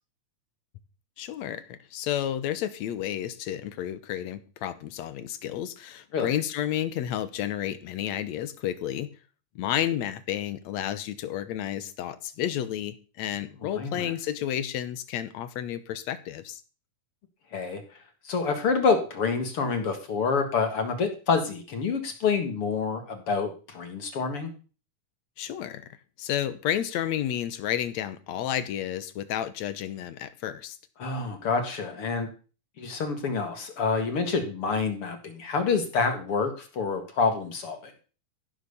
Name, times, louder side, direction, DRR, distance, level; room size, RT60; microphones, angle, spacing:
voice 1, 1.2-9.1 9.6-16.6 25.4-25.8 26.2-30.8, left 11 dB, 70° left, 1.9 m, -31 dB
voice 2, 13.6-14.1 17.5-17.8 18.2-24.5 31.0-32.3 32.8-37.9, left 4 dB, 50° left, 2.3 m, -27 dB
15.5 x 6.4 x 6.9 m
omnidirectional pair, 3.8 m